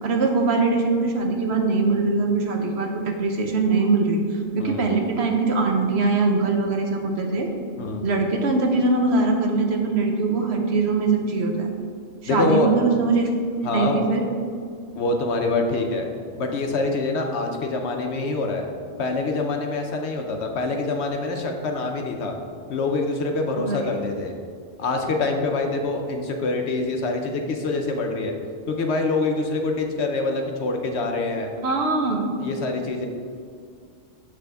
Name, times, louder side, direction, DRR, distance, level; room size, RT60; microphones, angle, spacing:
voice 1, 0.0-4.2 4.5-7.5 8.0-11.7 12.3-13.3 13.6-14.2 23.6-23.8 31.6-32.3, right 3 dB, 60° right, 2 dB, 0.9 m, -22 dB
voice 2, 12.2-12.7 13.6-14.1 15.0-16.1 16.3-18.6 19.0-22.4 22.7-24.3 24.8-28.3 28.7-31.5 32.4-33.1, left 3 dB, 65° left, 3 dB, 0.9 m, -25 dB
6.8 x 6.1 x 3.4 m, 2.2 s
omnidirectional pair, 1.4 m